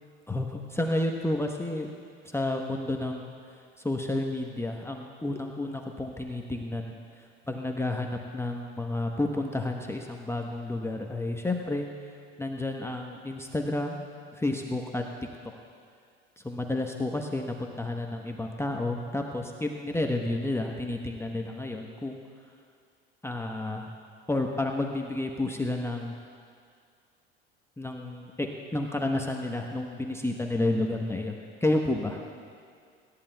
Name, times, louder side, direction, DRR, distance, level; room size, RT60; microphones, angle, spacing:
voice 1, 0.3-1.9 2.3-3.3 3.8-14.0 14.3-15.0 15.4-15.5 16.4-22.2 23.2-23.9 24.3-26.1 27.8-32.2, left 2 dB, 10° left, 2 dB, 1.1 m, -31 dB
26.5 x 13.5 x 2.3 m, 2.2 s
hypercardioid pair, 65°, 30 cm